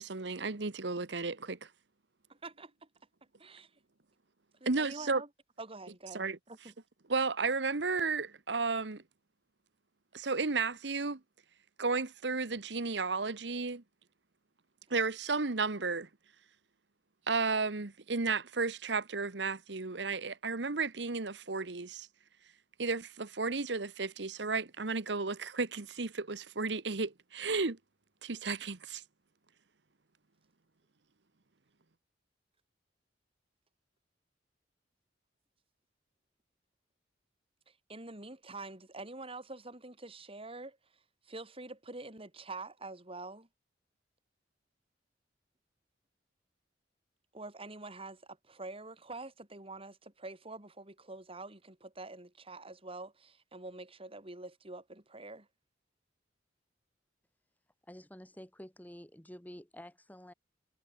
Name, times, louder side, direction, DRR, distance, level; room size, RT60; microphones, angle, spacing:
voice 1, 0.0-1.6 4.6-5.2 6.1-6.4 7.1-9.0 10.1-11.2 11.8-13.8 14.9-16.1 17.3-22.1 22.8-27.8 28.2-29.0, right 4 dB, 70° right, 1.2 m, -33 dB
voice 2, 2.3-2.7 3.4-3.7 4.6-5.3 5.6-6.7 37.7-40.8 41.2-43.5 47.3-55.5, right 2 dB, 30° right, 4.8 m, -46 dB
voice 3, 57.9-60.3, equal, 10° left, 2.9 m, -50 dB
head